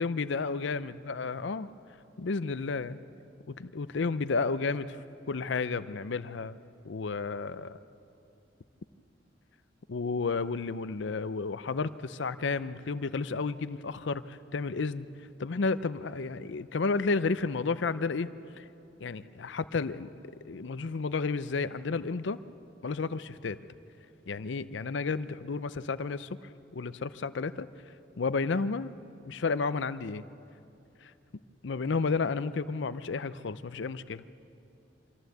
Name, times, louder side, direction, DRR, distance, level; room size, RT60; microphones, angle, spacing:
voice 1, 0.0-1.7 2.2-3.0 3.5-6.6 6.8-7.8 9.9-15.1 15.4-18.3 18.6-18.7 19.0-20.1 20.4-22.4 22.8-23.6 24.3-27.7 28.2-28.9 29.2-30.2 31.0-31.1 31.6-34.2, left 4 dB, 70° left, 14 dB, 0.6 m, -32 dB
24.5 x 14.5 x 8.0 m, 2.7 s
head